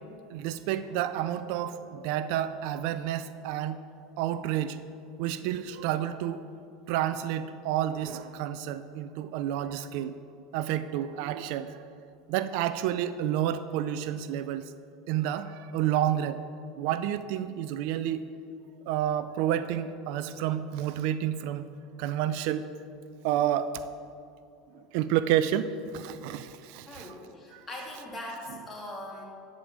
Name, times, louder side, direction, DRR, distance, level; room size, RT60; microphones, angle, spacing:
voice 1, 0.3-3.8 4.2-4.8 5.2-6.4 6.9-10.1 10.5-11.8 12.3-14.7 15.1-16.4 16.8-18.2 18.9-21.7 22.0-22.7 23.2-23.7 24.9-27.1 27.5-27.6, right 11 dB, 70° right, 13 dB, 0.4 m, -30 dB
voice 2, 26.9-29.2, left 1 dB, 25° left, -2 dB, 2.8 m, -41 dB
11.0 x 5.0 x 7.5 m, 2.5 s
supercardioid pair, 100°, 0 cm